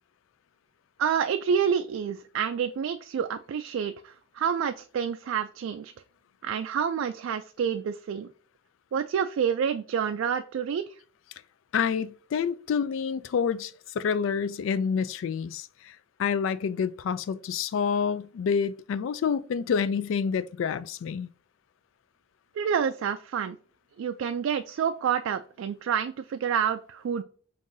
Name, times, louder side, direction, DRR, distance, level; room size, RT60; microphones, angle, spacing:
voice 1, 1.0-5.9 6.4-8.3 8.9-11.0 22.6-23.6 24.0-27.2, right 7 dB, 80° right, 0.3 m, -28 dB
voice 2, 11.7-21.3, left 6 dB, 70° left, 0.3 m, -28 dB
5.4 x 2.6 x 2.6 m
head